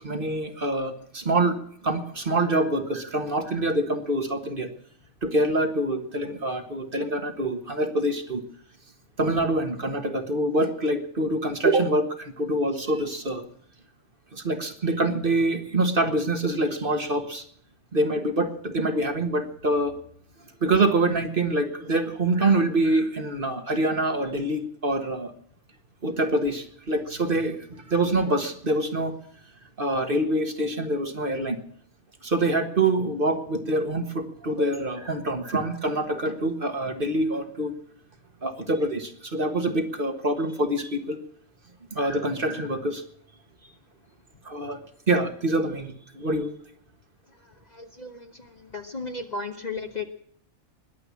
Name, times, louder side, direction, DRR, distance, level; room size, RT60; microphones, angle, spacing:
voice 1, 0.0-1.6 1.8-4.7 5.2-8.4 9.2-13.4 14.3-17.4 17.9-19.9 20.6-25.3 26.0-29.1 29.8-31.6 32.2-37.7 38.4-41.2 41.9-43.0 44.4-44.8 45.1-46.5, right 2 dB, 40° right, 7 dB, 1.7 m, -25 dB
voice 2, 47.7-50.1, left 3 dB, 35° left, 7 dB, 1.2 m, -35 dB
20.5 x 8.1 x 8.3 m, 0.64 s
omnidirectional pair, 1.4 m